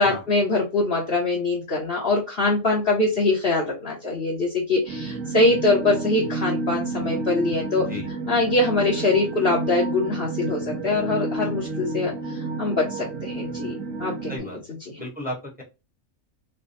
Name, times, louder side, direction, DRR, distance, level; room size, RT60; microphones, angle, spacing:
voice 1, 0.0-7.9 8.3-13.7 14.0-14.3 14.9-15.0, left 2 dB, 50° left, -3 dB, 1.1 m, -23 dB
sound 1, 4.9-14.4, right 3 dB, 85° right, 1.1 m, -30 dB
voice 2, 14.3-15.6, left 1 dB, 5° right, -1 dB, 1.0 m, -34 dB
3.3 x 2.2 x 4.0 m, 0.26 s
omnidirectional pair, 1.3 m